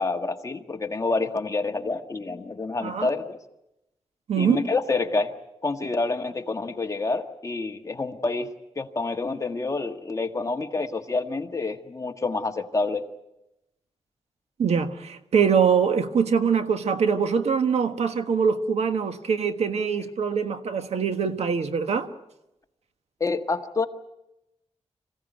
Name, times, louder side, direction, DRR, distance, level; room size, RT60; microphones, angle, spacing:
voice 1, 0.0-3.4 4.4-5.3 5.6-8.5 8.7-13.1 23.2-23.9, left 3 dB, 30° left, 1.6 m, -28 dB
voice 2, 4.3-4.6 14.6-22.1, right 6 dB, 80° right, 1.4 m, -23 dB
26.5 x 16.0 x 9.1 m
wide cardioid pair, 115°, 11 cm